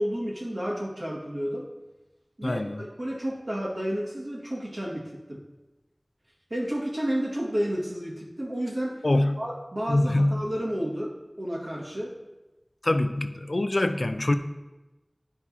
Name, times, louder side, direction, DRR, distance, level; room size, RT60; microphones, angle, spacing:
voice 1, 0.0-1.7 2.4-5.4 6.5-9.0 9.4-12.1, equal, 75° right, -6 dB, 2.0 m, -31 dB
voice 2, 2.4-2.8 9.0-9.4 9.9-10.5 12.8-14.4, left 1 dB, 70° left, 8 dB, 0.4 m, -24 dB
11.0 x 4.7 x 2.8 m, 1.1 s
wide cardioid pair, 45°, 0 cm